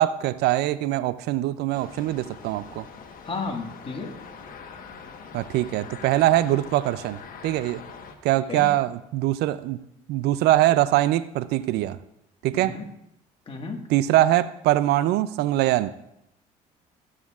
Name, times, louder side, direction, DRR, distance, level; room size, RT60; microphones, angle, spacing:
voice 1, 0.0-2.8 5.3-7.8 8.2-9.8 10.1-12.0 12.4-12.8 13.9-15.9, right 14 dB, 70° right, 16 dB, 0.4 m, -23 dB
sound 1, 1.7-8.2, left 5 dB, 55° left, 1.2 m, -43 dB
voice 2, 3.2-4.1 8.5-8.7 12.5-12.9 13.5-13.8, left 4 dB, 30° left, 3 dB, 1.6 m, -33 dB
14.5 x 7.3 x 2.4 m, 0.80 s
supercardioid pair, 75°, 18 cm